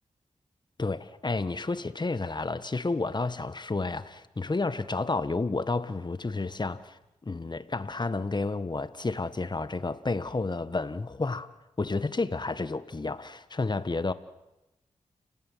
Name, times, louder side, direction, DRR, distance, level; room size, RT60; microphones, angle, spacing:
voice 1, 0.8-11.5 11.8-14.1, left 3 dB, 35° left, 1.6 m, -31 dB
29.5 x 18.0 x 9.4 m
cardioid pair, 50°, 13 cm